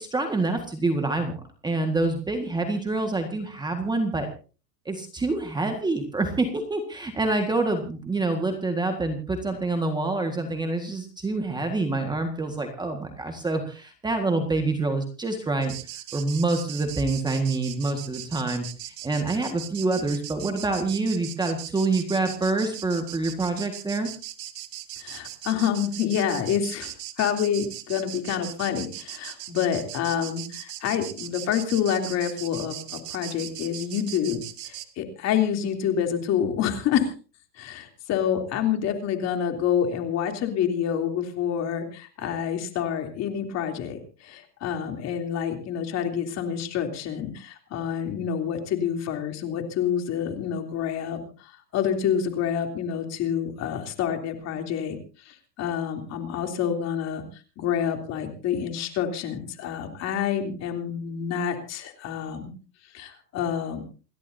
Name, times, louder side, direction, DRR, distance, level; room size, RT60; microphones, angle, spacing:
voice 1, 0.0-4.3 4.9-15.7 16.1-24.1, right 2 dB, 10° right, 5 dB, 1.8 m, -26 dB
sound 1, 15.6-34.9, right 13 dB, 70° right, 1.9 m, -39 dB
voice 2, 25.0-26.9 27.2-34.4 34.6-37.1 37.6-51.2 51.7-55.0 55.3-57.2 57.6-62.5 62.9-63.8, left 8 dB, 30° left, 5 dB, 3.2 m, -27 dB
28.5 x 12.5 x 2.8 m, 0.37 s
supercardioid pair, 140°, 50 cm